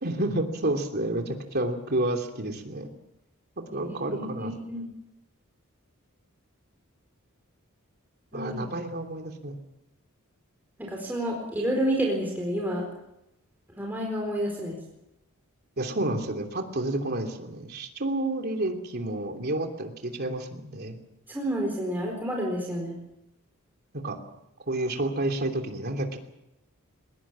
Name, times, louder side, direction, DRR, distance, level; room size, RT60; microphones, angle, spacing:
voice 1, 0.0-2.9 3.7-4.5 8.3-9.6 15.8-21.0 23.9-24.2 24.7-26.2, right 1 dB, 50° right, 4 dB, 3.0 m, -30 dB
voice 2, 3.8-4.9 8.3-8.7 10.8-12.8 13.8-14.8 21.3-23.0, equal, 10° right, -1 dB, 4.5 m, -29 dB
22.0 x 20.5 x 7.5 m, 0.86 s
head